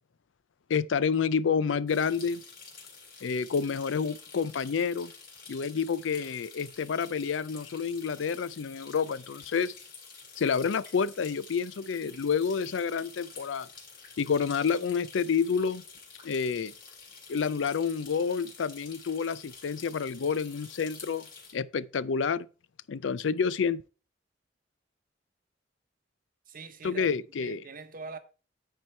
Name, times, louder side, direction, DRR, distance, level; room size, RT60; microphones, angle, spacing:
voice 1, 0.7-2.4 3.2-5.1 5.5-9.7 10.4-13.7 14.2-15.8 16.2-16.7 17.3-21.2 21.5-22.5 22.9-23.8 26.8-27.6, left 6 dB, 85° left, 0.4 m, -29 dB
sound 1, 1.9-21.5, left 5 dB, 55° left, 3.1 m, -49 dB
voice 2, 26.5-28.2, right 4 dB, 50° right, 0.9 m, -44 dB
9.5 x 4.5 x 4.4 m
head